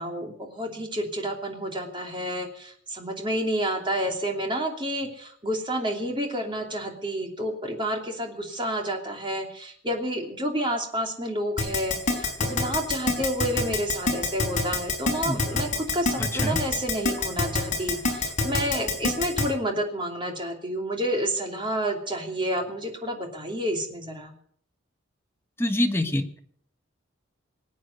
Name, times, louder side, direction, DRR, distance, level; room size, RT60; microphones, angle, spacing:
voice 1, 0.0-24.3, right 1 dB, 25° right, 2 dB, 2.8 m, -30 dB
Keyboard (musical), 11.6-19.4, left 3 dB, 40° left, 4.4 m, -24 dB
voice 2, 16.2-16.6 25.6-26.4, left 1 dB, 10° left, 4 dB, 1.3 m, -26 dB
19.5 x 8.6 x 8.1 m, 0.62 s
head